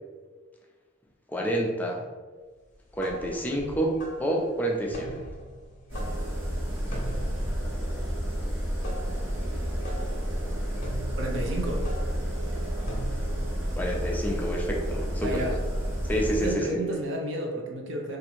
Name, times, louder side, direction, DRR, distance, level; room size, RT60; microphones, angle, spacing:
voice 1, 1.3-2.0 2.9-5.2 13.7-15.4 16.0-17.0, right 1 dB, 10° left, -1 dB, 0.4 m, -28 dB
sound 1, 2.7-13.5, right 1 dB, 40° left, 0.8 m, -42 dB
sound 2, 5.9-16.5, equal, 90° right, 1.2 m, -30 dB
voice 2, 11.2-11.9 15.2-15.6 16.4-18.2, right 1 dB, 70° right, 1 dB, 0.6 m, -31 dB
2.7 x 2.5 x 4.3 m, 1.4 s
head